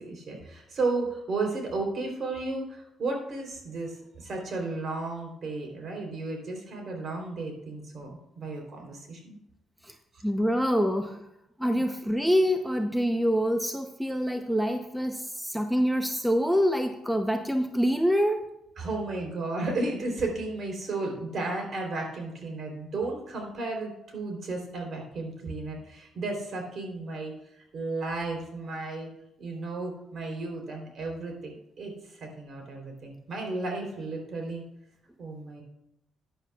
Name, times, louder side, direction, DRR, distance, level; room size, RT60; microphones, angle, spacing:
voice 1, 0.0-9.4 11.7-11.8 18.8-29.1 29.4-34.7 35.2-35.6, right 3 dB, 55° right, 2 dB, 3.5 m, -34 dB
voice 2, 10.2-11.2 11.6-18.5, equal, ahead, 5 dB, 0.8 m, -26 dB
14.0 x 10.0 x 2.4 m, 0.81 s
cardioid pair, 90°, 0 cm